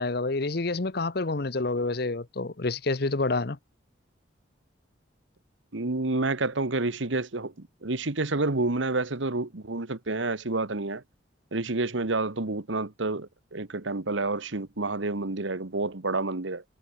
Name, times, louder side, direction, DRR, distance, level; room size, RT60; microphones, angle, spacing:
voice 1, 0.0-3.6, left 3 dB, 50° left, 0.9 m, -28 dB
voice 2, 5.7-11.0 11.5-16.6, right 2 dB, 70° right, 1.4 m, -29 dB
head